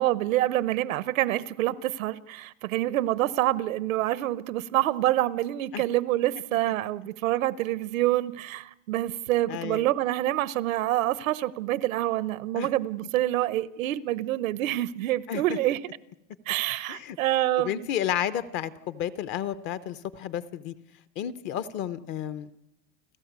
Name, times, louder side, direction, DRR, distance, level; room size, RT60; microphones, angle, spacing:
voice 1, 0.0-15.8 16.5-17.9, right 15 dB, 85° right, 1.0 m, -27 dB
voice 2, 9.5-9.9 12.5-12.7 15.3-15.6 16.9-17.2 17.6-20.7 21.2-22.5, left 10 dB, 30° left, 0.7 m, -32 dB
30.0 x 13.0 x 8.3 m
supercardioid pair, 165°, 39 cm